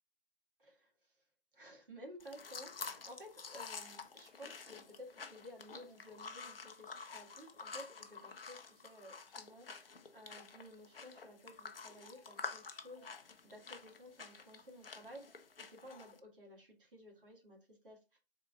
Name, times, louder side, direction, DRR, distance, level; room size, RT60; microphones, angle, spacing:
voice 1, 0.6-1.2 1.5-18.2, equal, 50° right, 0 dB, 1.6 m, -55 dB
sound 1, 2.2-16.2, left 5 dB, 60° left, 0.6 m, -49 dB
3.8 x 3.8 x 3.3 m, 0.30 s
figure-of-eight pair, 155°, 33 cm